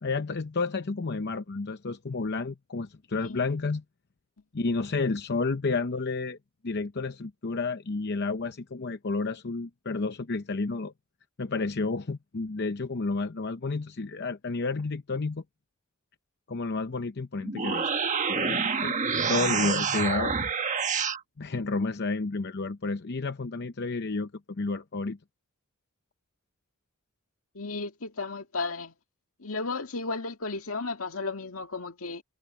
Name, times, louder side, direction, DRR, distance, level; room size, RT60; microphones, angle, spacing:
voice 1, 0.0-3.8 4.5-6.4 6.6-10.9 11.4-15.4 16.5-17.9 18.3-18.9 19.3-20.3 21.4-25.2, left 3 dB, 55° left, 0.7 m, -31 dB
voice 2, 3.1-3.5 27.5-28.9 29.4-32.2, left 3 dB, 80° left, 2.0 m, -34 dB
sound 1, 17.4-21.2, right 5 dB, 35° right, 1.4 m, -28 dB
head